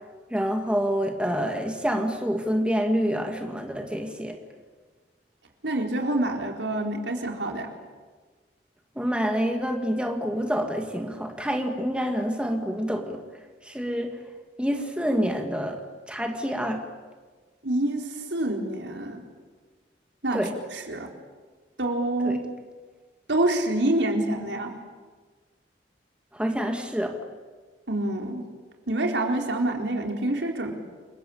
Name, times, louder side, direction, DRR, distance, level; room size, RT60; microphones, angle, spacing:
voice 1, 0.3-4.4 9.0-13.2 13.6-14.1 14.6-16.8 20.3-20.5 22.2-22.4 26.3-27.2, equal, 5° right, 4 dB, 2.2 m, -27 dB
voice 2, 5.6-7.7 17.6-19.2 20.2-20.4 20.7-21.1 21.8-22.4 23.3-24.7 27.9-28.4 28.9-30.7, right 1 dB, 80° right, 2 dB, 4.3 m, -26 dB
28.5 x 23.5 x 8.7 m, 1.4 s
head